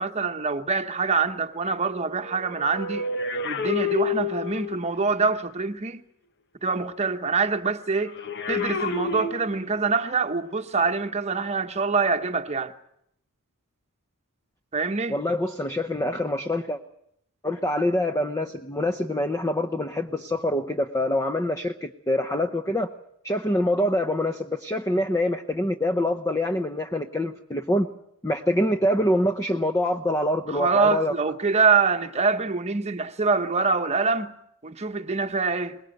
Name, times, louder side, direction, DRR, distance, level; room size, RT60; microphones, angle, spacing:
voice 1, 0.0-3.1 3.4-6.0 6.6-8.2 8.5-12.7 14.7-15.2 30.5-34.3 34.6-35.8, right 4 dB, 30° right, 1.1 m, -25 dB
sound 1, 2.1-4.9 8.0-9.9 10.8-11.0, left 5 dB, 50° left, 1.1 m, -30 dB
voice 2, 15.1-16.8 17.4-22.9 23.2-27.9 28.2-31.1, left 1 dB, 15° left, 0.8 m, -25 dB
23.0 x 21.0 x 7.9 m
head